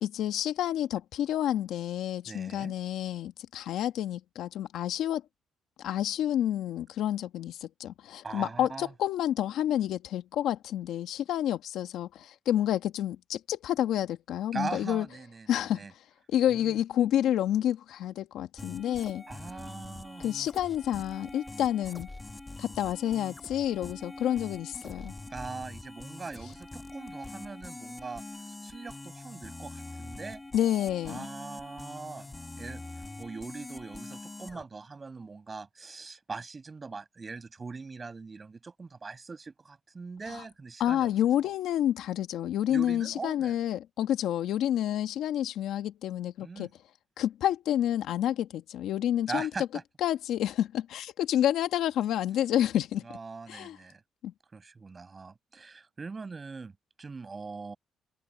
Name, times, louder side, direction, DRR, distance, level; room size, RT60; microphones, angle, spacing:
voice 1, 0.0-5.2 5.8-15.1 15.5-15.8 16.3-19.2 20.2-22.1 22.6-25.1 30.5-31.3 40.8-46.7 47.2-49.7 50.0-53.0 53.5-53.8 54.2-54.3, left 11 dB, 80° left, 1.7 m, -29 dB
voice 2, 2.3-2.7 8.2-8.9 14.5-15.9 16.5-16.7 19.3-20.3 25.3-30.4 31.0-41.1 42.7-43.5 46.4-46.7 49.3-49.6 53.0-54.0 54.5-56.7 57.0-57.8, right 4 dB, 30° right, 6.3 m, -41 dB
sound 1, 18.6-34.6, left 2 dB, 20° left, 1.8 m, -44 dB
open air
cardioid pair, 90°, 0 cm